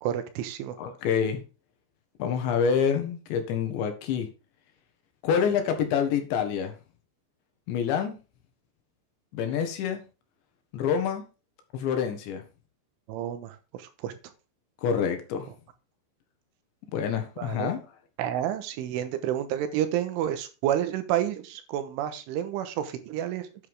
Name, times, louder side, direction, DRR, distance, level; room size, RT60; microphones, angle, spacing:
voice 1, 0.0-0.8 13.1-13.6 14.0-14.2 17.4-17.7 18.2-23.5, right 11 dB, 80° right, 10 dB, 3.5 m, -29 dB
voice 2, 0.8-1.4 2.2-4.3 5.2-6.8 7.7-8.2 9.3-10.0 10.7-11.2 11.7-12.4 14.8-15.5 16.9-17.8, left 7 dB, 70° left, 6 dB, 3.7 m, -27 dB
10.0 x 9.3 x 3.7 m, 0.32 s
omnidirectional pair, 5.8 m